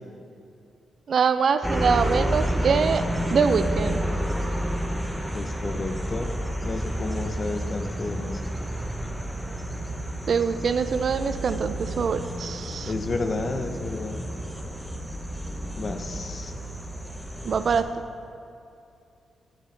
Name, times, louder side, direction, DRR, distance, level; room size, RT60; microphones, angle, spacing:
voice 1, 1.1-3.0 3.3-4.0 10.3-12.9 17.4-17.8, right 6 dB, 60° right, 11 dB, 0.3 m, -24 dB
sound 1, 1.6-17.8, equal, ahead, 0.7 m, -30 dB
voice 2, 5.3-6.3 6.6-8.4 12.9-14.3 15.8-16.5, left 3 dB, 45° left, 7 dB, 0.6 m, -31 dB
9.2 x 7.3 x 3.2 m, 2.6 s
cardioid pair, 75°, 0 cm